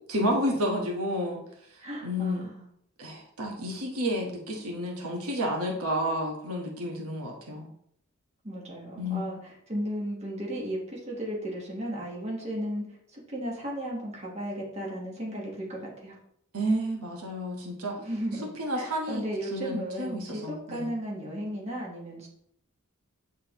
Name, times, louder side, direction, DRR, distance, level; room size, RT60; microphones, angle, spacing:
voice 1, 0.0-1.4 2.0-2.5 3.0-7.7 9.0-9.3 16.5-17.9 18.6-19.2 19.5-20.9, equal, 85° right, 0 dB, 1.3 m, -30 dB
voice 2, 1.8-2.7 8.4-12.8 13.1-16.2 17.9-22.3, equal, 30° right, -3 dB, 1.4 m, -35 dB
8.7 x 3.7 x 3.0 m, 0.71 s
head